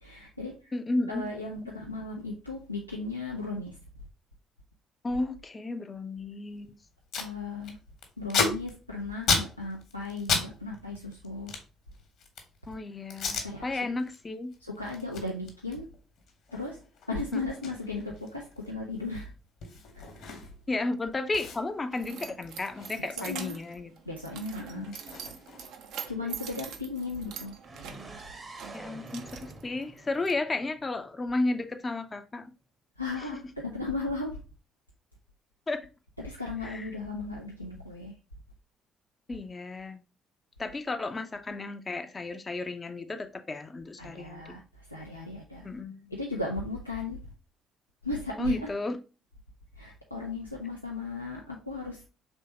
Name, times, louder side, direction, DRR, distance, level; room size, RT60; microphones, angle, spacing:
voice 1, 0.0-0.7 1.1-3.8 7.2-7.8 8.2-11.5 13.4-13.6 14.6-15.9 16.5-16.8 17.1-19.3 19.9-20.3 23.0-23.6 24.1-24.9 26.1-27.5 33.0-34.4 36.2-38.1 44.0-45.7 46.1-47.2 48.0-48.7 49.8-52.0, left 3 dB, 90° left, 0.4 m, -36 dB
voice 2, 0.7-1.6 5.0-6.7 12.7-14.5 20.7-23.9 24.8-24.9 26.2-26.5 28.7-32.5 33.2-33.3 35.7-35.8 36.6-36.9 39.3-40.0 40.6-44.6 45.6-46.1 48.4-49.0, left 2 dB, 25° left, 0.5 m, -33 dB
Packing tape duct tape, 6.6-6.7 6.9-7.3 7.6-10.5 10.7-12.6 13.1-13.5 13.9-14.2 14.5-20.7 21.0-21.1 21.3-23.7 24.0-25.9, left 4 dB, 55° left, 1.0 m, -34 dB
Keys jangling, 21.2-30.3, right 7 dB, 60° right, 0.5 m, -44 dB
sound 1, 27.6-31.5, right 3 dB, 30° right, 0.8 m, -47 dB
4.3 x 3.4 x 2.8 m
figure-of-eight pair, 50°, 0 cm